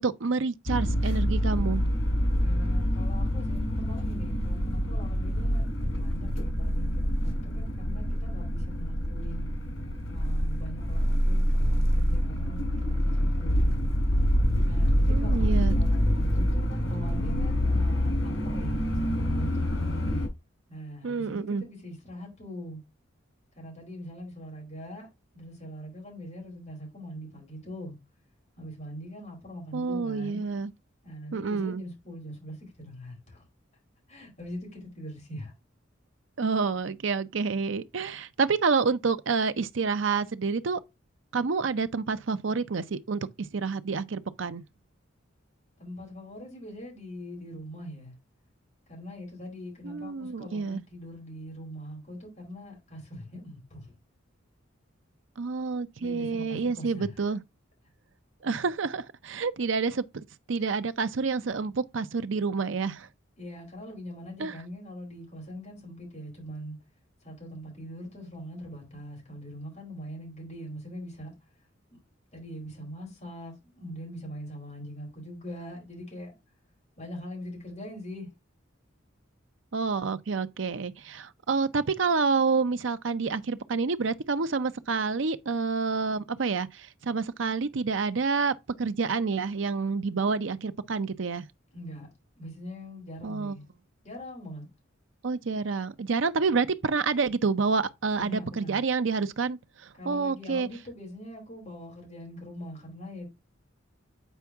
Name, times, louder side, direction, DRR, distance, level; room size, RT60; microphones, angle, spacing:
voice 1, 0.0-1.8 15.1-15.8 21.0-21.6 29.7-30.7 31.3-31.8 36.4-40.8 41.3-44.6 49.8-50.8 55.4-57.4 58.4-60.0 60.5-63.1 64.4-64.6 79.7-91.4 93.2-93.6 95.2-100.7, right 4 dB, 70° right, 0.6 m, -28 dB
sound 1, 0.7-20.3, equal, 85° left, 3.4 m, -26 dB
voice 2, 2.4-9.5 10.1-13.9 14.6-20.0 20.7-22.8 23.6-27.9 28.6-30.4 31.0-33.5 34.1-35.5 45.8-48.1 48.9-53.9 56.0-57.1 63.4-66.8 67.2-71.3 71.9-72.0 72.3-76.3 77.0-78.3 91.7-92.1 92.4-93.6 94.0-94.7 98.2-98.8 100.0-103.2, equal, 40° left, 4.4 m, -42 dB
8.2 x 4.6 x 3.5 m
head